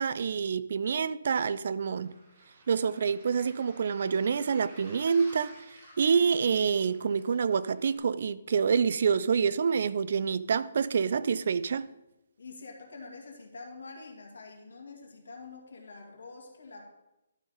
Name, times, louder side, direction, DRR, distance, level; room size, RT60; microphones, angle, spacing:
voice 1, 0.0-2.1 2.7-11.9, right 6 dB, 45° right, 0.3 m, -27 dB
Waves surf, 2.0-8.0, right 1 dB, 25° right, 2.4 m, -54 dB
voice 2, 12.4-16.9, left 3 dB, 75° left, 2.1 m, -46 dB
12.0 x 4.0 x 5.3 m
hypercardioid pair, 175°, 0 cm